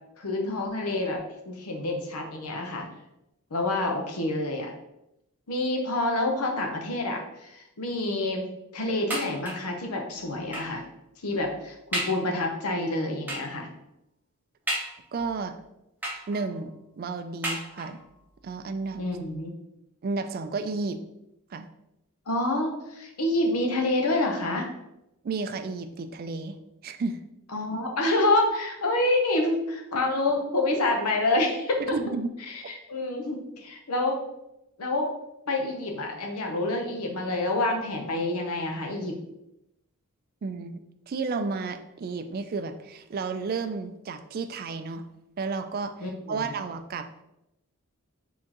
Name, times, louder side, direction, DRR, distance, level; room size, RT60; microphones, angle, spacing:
voice 1, 0.2-1.2 1.5-2.8 3.5-4.7 5.5-8.5 8.7-10.8 11.2-13.7 19.0-19.5 22.3-24.7 27.5-31.8 32.5-34.2 34.8-35.1 35.5-39.2 46.0-46.5, left 2 dB, 90° left, 2 dB, 0.9 m, -27 dB
sound 1, 9.1-9.8 10.5-10.8 11.4-11.5 11.9-12.3 13.3-13.6 14.7-15.3 16.0-16.6 17.4-18.1 18.9-19.0 19.3-19.4, right 1 dB, 10° right, 0.8 m, -33 dB
voice 2, 15.1-15.6 16.3-18.0 18.4-19.0 20.0-21.0 21.5-21.7 25.2-26.6 26.8-27.2 31.8-32.3 40.4-40.8 41.1-45.1 45.4-45.9 46.3-47.1, right 4 dB, 40° right, 9 dB, 0.3 m, -32 dB
4.4 x 3.6 x 2.9 m, 0.86 s
head